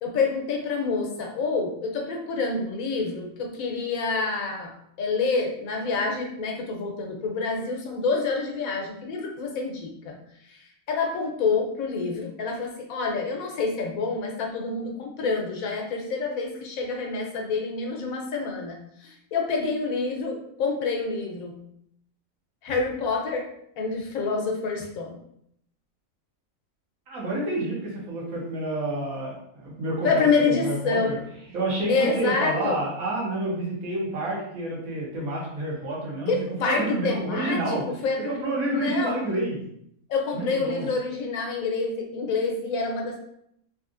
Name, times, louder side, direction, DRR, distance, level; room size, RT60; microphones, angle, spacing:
voice 1, 0.0-4.7 5.0-10.2 10.5-10.6 10.9-21.6 22.6-23.5 23.8-25.2 30.0-31.2 31.9-32.8 36.3-38.4 38.7-39.2 40.1-43.2, left 4 dB, 85° left, 1 dB, 1.1 m, -27 dB
voice 2, 27.1-30.3 30.6-31.1 31.5-36.3 36.6-37.8 38.3-39.6 40.3-40.9, right 2 dB, 90° right, -3 dB, 1.4 m, -29 dB
3.4 x 2.7 x 2.5 m, 0.73 s
omnidirectional pair, 1.4 m